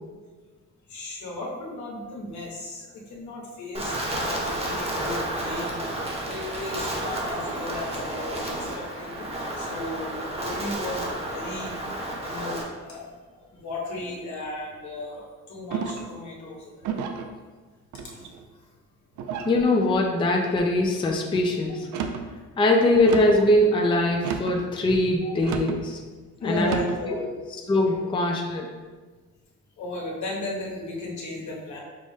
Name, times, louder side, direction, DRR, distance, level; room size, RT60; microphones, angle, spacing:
voice 1, 0.9-5.8 6.2-11.7 12.2-13.0 13.3-16.9 18.1-18.2 23.8-23.9 25.2-25.3 26.4-27.3 29.8-31.8, left 2 dB, 70° left, -3 dB, 1.2 m, -35 dB
Wind, 3.7-12.6, right 1 dB, 20° right, 0.9 m, -31 dB
sound 1, 15.7-16.2 16.8-17.3 17.9-18.5 19.2-19.6 20.2-20.7 21.8-22.3 23.0-23.4 24.2-24.6 25.4-25.8 26.6-27.0, right 6 dB, 75° right, 0.5 m, -32 dB
voice 2, 19.4-21.9 22.6-26.0 26.4-26.8 27.7-28.7, left 1 dB, 15° left, 1 dB, 0.4 m, -22 dB
5.5 x 2.1 x 3.2 m, 1.4 s
cardioid pair, 90°, 30 cm